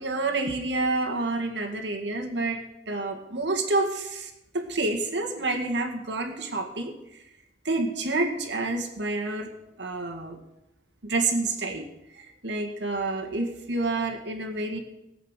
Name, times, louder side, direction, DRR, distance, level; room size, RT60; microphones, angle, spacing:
voice 1, 0.0-2.6 2.9-6.9 7.6-9.5 9.8-10.4 11.0-11.9 12.1-14.8, right 2 dB, 70° right, 3 dB, 2.0 m, -28 dB
18.0 x 8.2 x 6.7 m, 0.87 s
head